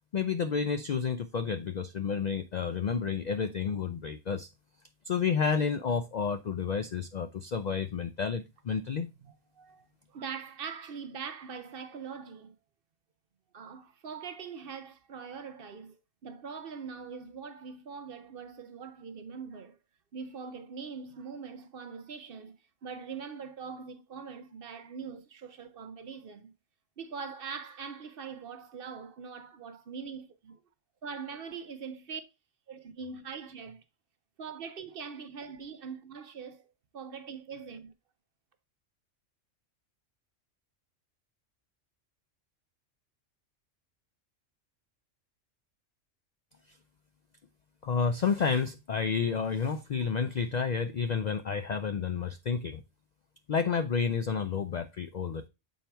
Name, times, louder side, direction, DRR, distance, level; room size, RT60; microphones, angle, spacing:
voice 1, 0.1-4.5 5.1-9.1 46.7-46.8 47.8-52.8 53.5-55.5, left 6 dB, 75° left, 0.4 m, -30 dB
voice 2, 9.2-12.6 13.5-19.8 20.1-26.5 27.0-30.6 31.0-32.2 32.7-33.8 34.4-37.9, right 6 dB, 55° right, 0.8 m, -42 dB
7.3 x 4.5 x 3.3 m
omnidirectional pair, 1.3 m